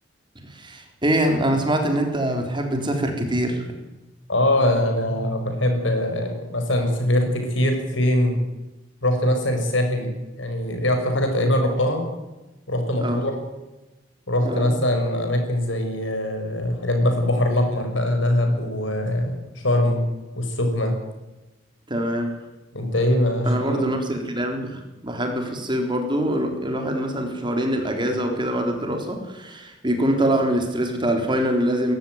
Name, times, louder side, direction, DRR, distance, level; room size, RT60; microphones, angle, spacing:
voice 1, 0.5-3.7 13.0-13.3 14.4-14.8 21.9-22.3 23.4-31.9, right 1 dB, 25° right, 4 dB, 3.8 m, -24 dB
voice 2, 4.3-8.4 9.0-10.1 10.4-12.0 12.7-13.3 14.3-19.4 19.6-20.0 20.4-20.9 22.7-23.9, left 1 dB, 70° left, 4 dB, 6.4 m, -22 dB
22.0 x 15.0 x 9.5 m, 1.1 s
head